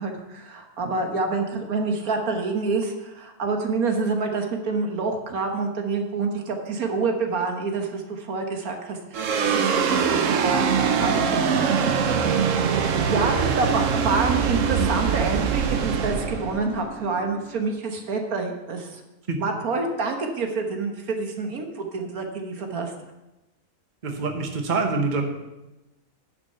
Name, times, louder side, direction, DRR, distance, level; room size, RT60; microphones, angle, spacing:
voice 1, 0.0-12.3 12.8-19.0 19.4-22.9, right 4 dB, 80° right, 3 dB, 1.7 m, -27 dB
sound 1, 9.1-17.7, right 6 dB, 65° right, 1.1 m, -23 dB
voice 2, 24.0-25.2, right 4 dB, 35° right, 3 dB, 1.2 m, -25 dB
10.5 x 5.9 x 5.7 m, 0.99 s
omnidirectional pair, 1.5 m